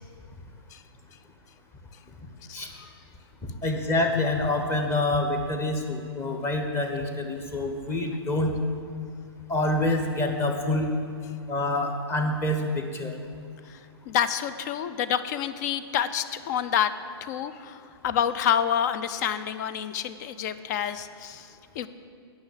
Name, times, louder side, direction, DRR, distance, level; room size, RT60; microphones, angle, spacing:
voice 1, 2.5-2.9 13.7-13.8 14.1-16.9 17.2-21.9, left 9 dB, 40° left, 13 dB, 0.5 m, -28 dB
voice 2, 3.6-8.5 9.5-10.9 11.5-13.2, left 2 dB, 15° left, 3 dB, 1.1 m, -26 dB
9.6 x 6.0 x 8.4 m, 2.3 s
figure-of-eight pair, 120°, 14 cm